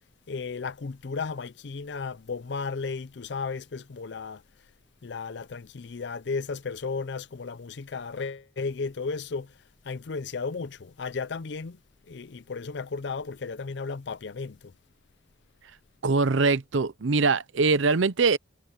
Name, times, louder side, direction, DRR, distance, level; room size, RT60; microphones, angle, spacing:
voice 1, 0.3-4.4 5.0-9.5 9.8-11.8 12.1-14.7, left 4 dB, 60° left, 0.5 m, -34 dB
voice 2, 16.0-18.4, right 4 dB, 75° right, 0.7 m, -22 dB
head